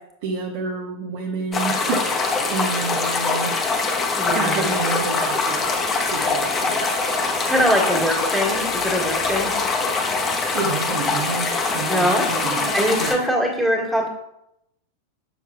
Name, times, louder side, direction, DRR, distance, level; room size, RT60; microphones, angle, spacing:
voice 1, 0.2-3.5 4.2-5.7 6.0-6.8 10.5-13.1, right 4 dB, 50° right, -1 dB, 1.1 m, -29 dB
sound 1, 1.5-13.1, left 3 dB, 20° left, 0.9 m, -23 dB
voice 2, 4.1-4.7 7.5-9.5 11.9-12.2 12.7-14.1, equal, 5° right, -4 dB, 1.8 m, -22 dB
7.0 x 5.9 x 2.3 m, 0.82 s
figure-of-eight pair, 90°, 0 cm